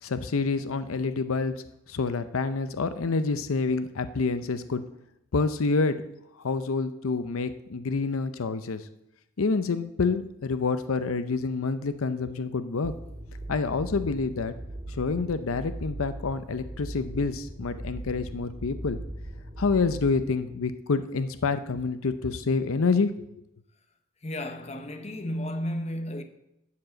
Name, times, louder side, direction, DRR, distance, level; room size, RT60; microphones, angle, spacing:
voice 1, 0.0-1.5 1.9-4.8 5.3-6.0 6.4-8.9 9.4-12.9 13.5-14.5 14.9-19.0 19.6-23.3, left 4 dB, 75° left, 0.6 m, -27 dB
sound 1, 12.8-20.2, right 1 dB, 20° right, 2.2 m, -39 dB
voice 2, 24.2-26.2, left 1 dB, 30° left, 0.8 m, -33 dB
12.5 x 4.8 x 7.8 m
head